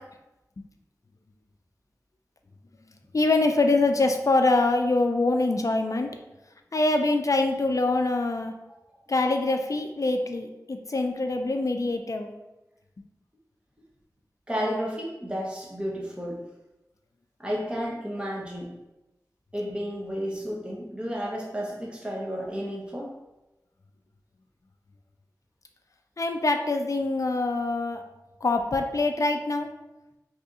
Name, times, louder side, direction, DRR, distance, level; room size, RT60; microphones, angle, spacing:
voice 1, 3.1-6.2 6.7-8.5 9.1-12.3 26.2-28.0 28.4-29.7, left 2 dB, 55° left, 5 dB, 0.4 m, -24 dB
voice 2, 14.5-16.4 17.4-18.7 19.5-23.1, equal, 15° right, -4 dB, 1.0 m, -32 dB
2.7 x 2.6 x 3.6 m, 0.99 s
wide cardioid pair, 40°, 7 cm